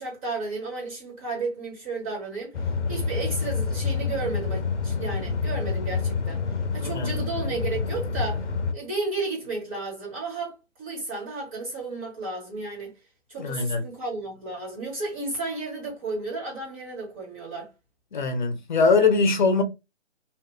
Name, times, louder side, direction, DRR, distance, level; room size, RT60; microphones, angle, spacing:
voice 1, 0.0-2.5 2.9-6.4 6.7-8.4 8.7-12.9 13.3-17.7, right 3 dB, 30° right, 1.2 m, -33 dB
sound 1, 2.5-8.7, left 5 dB, 80° left, 0.6 m, -28 dB
voice 2, 6.8-7.2 13.4-13.8 18.1-19.6, left 4 dB, 45° left, 0.7 m, -22 dB
2.8 x 2.4 x 2.2 m
figure-of-eight pair, 140°, 35 cm